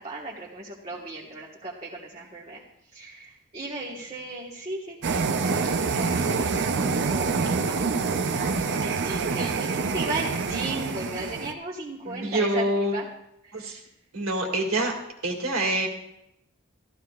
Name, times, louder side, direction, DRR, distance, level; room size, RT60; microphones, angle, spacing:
voice 1, 0.0-2.6 2.9-13.1 13.4-13.8, right 2 dB, 30° right, -5 dB, 1.4 m, -36 dB
sound 1, 5.0-11.5, right 4 dB, 55° right, 0.6 m, -26 dB
voice 2, 12.1-12.9 13.5-13.8 14.1-14.9 15.2-15.9, right 1 dB, 75° right, 2 dB, 2.2 m, -26 dB
14.5 x 13.0 x 2.4 m, 0.83 s
head